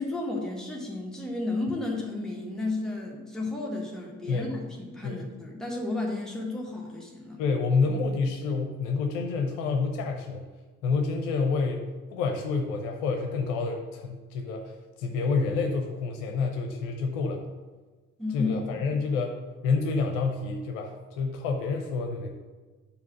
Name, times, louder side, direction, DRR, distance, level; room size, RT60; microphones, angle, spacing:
voice 1, 0.0-7.4 18.2-18.5 18.8-18.9, left 2 dB, ahead, -2 dB, 1.6 m, -33 dB
voice 2, 4.3-4.6 5.0-5.3 7.4-10.4 10.8-11.8 12.1-14.7 15.0-17.4 18.3-19.4 19.6-20.9 21.2-22.3, left 4 dB, 60° left, 3 dB, 0.8 m, -28 dB
5.3 x 4.7 x 5.8 m, 1.3 s
figure-of-eight pair, 50°, 44 cm